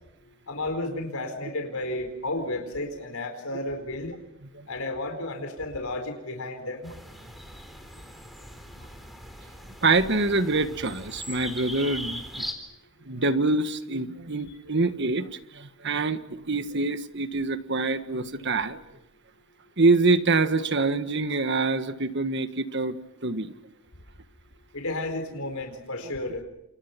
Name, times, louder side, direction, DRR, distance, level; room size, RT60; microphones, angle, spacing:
voice 1, 0.5-4.2 4.7-6.9 14.5-14.6 24.7-26.4, left 2 dB, 85° left, 5 dB, 4.5 m, -32 dB
sound 1, 6.8-12.5, equal, ahead, 4.1 m, -40 dB
voice 2, 9.8-12.4 13.1-15.3 15.5-18.8 19.8-23.0 23.2-23.5 26.0-26.1, right 3 dB, 55° right, 10 dB, 1.6 m, -25 dB
30.0 x 28.0 x 6.0 m, 0.87 s
head